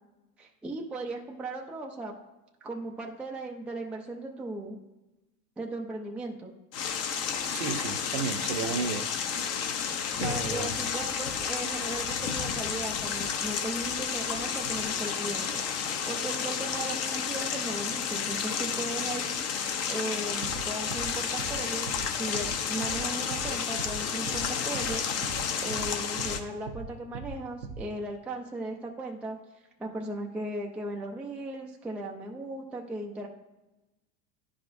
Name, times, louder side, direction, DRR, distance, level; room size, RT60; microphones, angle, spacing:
voice 1, 0.4-2.2 2.6-4.8 5.6-6.5 10.2-25.1 25.6-29.4 29.8-33.3, right 2 dB, 5° right, 0 dB, 0.4 m, -37 dB
sound 1, 6.7-26.4, left 7 dB, 35° left, 0.7 m, -31 dB
voice 2, 7.5-9.1 9.4-9.9 10.2-10.8, right 5 dB, 55° right, 7 dB, 0.9 m, -34 dB
sound 2, 20.4-20.6 20.9-21.1 21.4-21.5 21.9-22.0 22.3-22.5 22.8-23.0 23.3-23.5 23.8-23.9 24.3-24.4 24.7-24.9 25.2-25.4 25.7-25.9 26.2-26.3 26.7-26.8 27.1-27.3 27.6-27.8, right 5 dB, 85° right, 1.0 m, -39 dB
10.0 x 5.1 x 2.6 m, 1.1 s
supercardioid pair, 120°, 46 cm